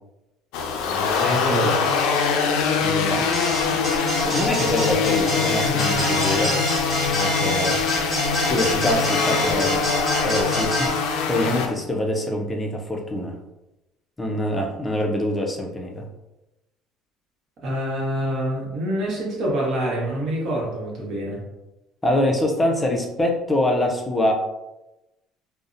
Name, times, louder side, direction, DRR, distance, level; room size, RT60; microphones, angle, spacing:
sound 1, 0.5-11.7, left 5 dB, 80° left, 0.4 m, -23 dB
voice 1, 1.2-1.9 17.6-21.4, right 1 dB, 55° right, -4 dB, 1.0 m, -26 dB
voice 2, 2.8-3.3 3.7-3.8 4.2-6.6 7.1-7.8 8.5-9.8 10.2-13.4 14.2-16.1 22.0-24.3, left 1 dB, 15° left, 2 dB, 0.4 m, -24 dB
sound 2, 3.3-10.9, equal, 10° right, 1.1 m, -26 dB
2.6 x 2.0 x 2.5 m, 0.97 s
cardioid pair, 110°, 0 cm